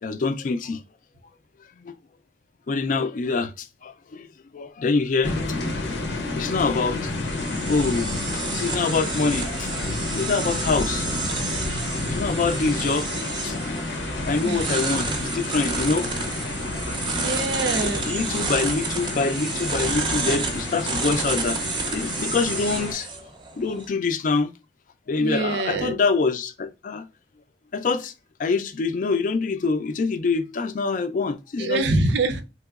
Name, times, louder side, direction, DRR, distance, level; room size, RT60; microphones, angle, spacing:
voice 1, 0.0-0.8 1.8-1.9 2.7-4.3 4.5-5.6 6.4-7.1 7.4-8.1 8.3-9.7 10.1-11.2 11.5-11.6 12.0-13.1 13.4-13.5 14.2-16.8 18.1-21.6 21.9-23.1 23.6-24.5 25.1-27.0 27.7-28.1 28.4-31.8, left 4 dB, 45° left, 0.3 m, -25 dB
sound 1, 5.2-22.9, left 2 dB, 90° left, 0.7 m, -30 dB
sound 2, 6.7-23.9, right 4 dB, 25° right, 0.5 m, -31 dB
voice 2, 14.4-14.8 17.1-18.2 25.1-26.0 31.6-32.4, right 2 dB, 90° right, 0.5 m, -25 dB
3.4 x 2.9 x 2.3 m
head